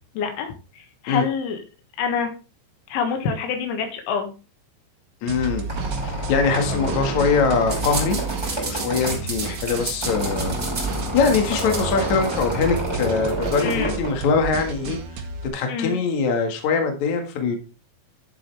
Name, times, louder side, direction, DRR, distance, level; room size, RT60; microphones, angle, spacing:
voice 1, 0.2-1.6 2.0-2.3 2.9-4.3 13.6-14.0 15.7-16.0, left 6 dB, 90° left, 5 dB, 4.1 m, -26 dB
voice 2, 5.2-5.7 6.0-8.2 8.6-10.6 11.1-15.0 15.5-17.6, left 5 dB, 55° left, 5 dB, 2.4 m, -22 dB
sound 1, 5.3-15.5, right 4 dB, 65° right, 3.0 m, -33 dB
Squeak, 5.4-15.0, right 1 dB, 5° right, 3.1 m, -29 dB
sound 2, 7.7-13.8, right 3 dB, 25° right, 2.0 m, -33 dB
11.0 x 7.5 x 3.3 m, 0.31 s
omnidirectional pair, 5.3 m